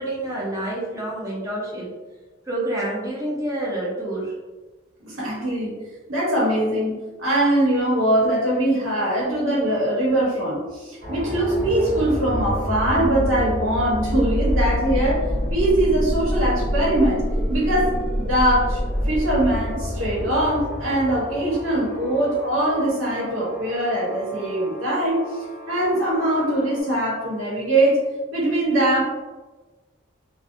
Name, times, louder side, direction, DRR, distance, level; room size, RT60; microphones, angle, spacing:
voice 1, 0.0-1.9 2.4-4.3, right 1 dB, 15° right, -5 dB, 0.6 m, -28 dB
voice 2, 5.0-5.7 6.1-15.2 15.5-17.2 17.5-17.9 18.2-25.2 25.7-28.0 28.3-29.0, right 1 dB, 90° right, -5 dB, 1.0 m, -22 dB
sound 1, 11.0-26.8, equal, 55° right, 1.0 m, -27 dB
2.5 x 2.1 x 2.6 m, 1.2 s
head